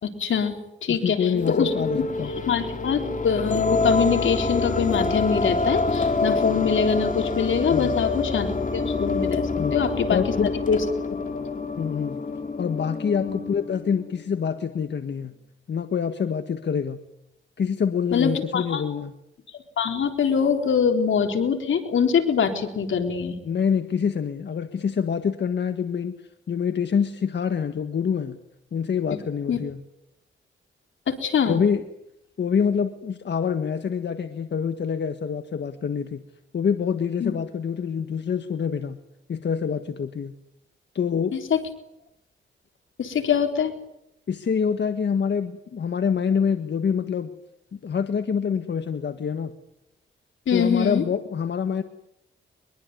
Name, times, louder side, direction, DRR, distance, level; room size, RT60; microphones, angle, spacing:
voice 1, 0.0-2.0 2.5-10.2 10.5-10.8 11.1-11.2 11.6-11.7 13.2-13.4 18.1-18.8 19.8-23.4 29.1-29.2 29.5-29.6 31.1-31.6 37.2-37.3 41.3-41.6 43.0-43.7 50.5-51.0, left 6 dB, 80° left, 5 dB, 3.9 m, -24 dB
voice 2, 0.9-2.3 7.7-7.9 9.6-9.7 10.1-10.5 11.8-12.2 12.6-15.3 15.7-17.0 17.6-19.1 23.4-26.1 26.5-28.4 28.7-29.8 31.5-31.8 32.4-36.2 36.5-39.0 39.3-40.3 40.9-41.3 44.3-47.3 47.7-49.5 50.5-51.8, left 7 dB, 60° left, 9 dB, 1.6 m, -26 dB
sound 1, 1.3-14.2, left 3 dB, 40° left, 3.5 m, -27 dB
23.5 x 22.5 x 9.6 m, 0.84 s
cardioid pair, 85°, 20 cm